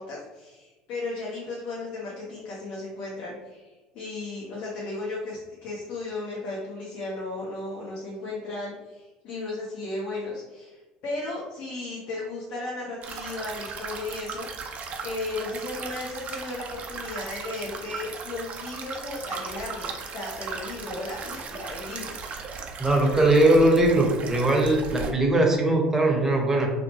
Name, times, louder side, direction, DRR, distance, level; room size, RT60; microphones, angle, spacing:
voice 1, 0.0-22.1, left 2 dB, 60° left, -5 dB, 0.7 m, -35 dB
sound 1, 13.0-25.1, right 5 dB, 45° right, 0.4 m, -37 dB
voice 2, 22.8-26.7, right 1 dB, 15° right, 0 dB, 0.7 m, -20 dB
2.8 x 2.0 x 2.9 m, 1.2 s
hypercardioid pair, 75°, 3 cm